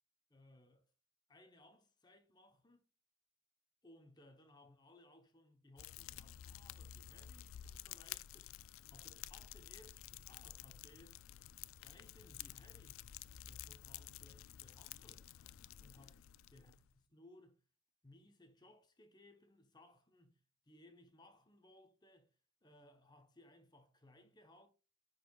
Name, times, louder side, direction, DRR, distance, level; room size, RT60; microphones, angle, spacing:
voice 1, 0.3-0.9 1.3-2.8 3.8-8.5 8.9-11.2 11.8-13.1 13.5-15.3 15.8-17.6 18.0-24.7, left 1 dB, 20° left, 0.9 m, -64 dB
Fire, 5.8-16.9, left 12 dB, 75° left, 0.3 m, -52 dB
9.8 x 4.6 x 2.4 m
head